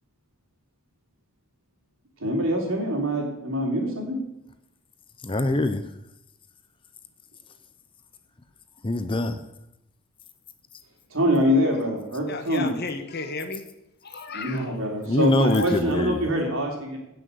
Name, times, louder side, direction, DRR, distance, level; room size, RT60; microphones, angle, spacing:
voice 1, 2.2-4.2 11.1-12.7 14.3-17.0, equal, 65° right, 1 dB, 3.2 m, -24 dB
voice 2, 5.2-5.8 8.8-9.4 15.1-16.3, left 2 dB, 25° left, 9 dB, 0.6 m, -24 dB
voice 3, 12.3-13.6 14.0-14.8 15.2-15.7, left 4 dB, 45° left, 7 dB, 1.2 m, -34 dB
16.5 x 6.3 x 6.8 m, 0.87 s
head